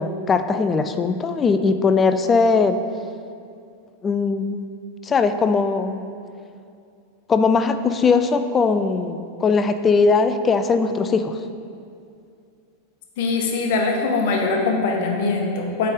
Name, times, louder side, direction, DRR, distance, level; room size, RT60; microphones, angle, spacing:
voice 1, 0.0-2.8 4.0-4.7 5.0-6.1 7.3-11.4, left 4 dB, 20° left, 9 dB, 0.3 m, -20 dB
voice 2, 13.2-15.9, left 3 dB, 50° left, 1 dB, 0.9 m, -22 dB
8.1 x 3.4 x 5.0 m, 2.4 s
figure-of-eight pair, 90°, 0 cm